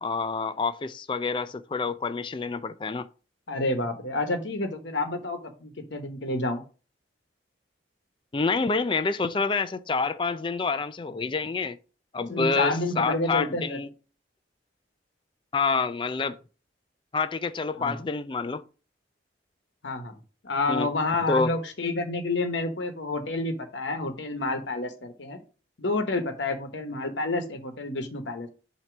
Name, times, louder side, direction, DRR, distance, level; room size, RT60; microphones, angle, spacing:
voice 1, 0.0-3.1 8.3-11.8 12.1-13.9 15.5-16.4 17.1-18.6 20.7-20.9 21.3-21.5, left 4 dB, 25° left, 0.4 m, -27 dB
voice 2, 3.5-6.6 12.3-13.8 17.8-18.0 19.8-20.1 20.4-25.4 25.8-28.5, left 2 dB, 75° left, 1.0 m, -29 dB
7.7 x 2.9 x 6.0 m
head